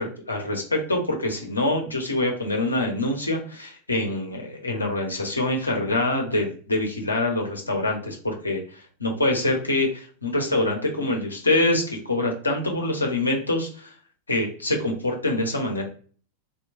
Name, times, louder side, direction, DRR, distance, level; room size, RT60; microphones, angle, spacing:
voice 1, 0.0-13.9 14.3-15.8, left 2 dB, 80° left, 2 dB, 0.8 m, -25 dB
3.0 x 2.4 x 2.4 m, 0.43 s
figure-of-eight pair, 90°, 0 cm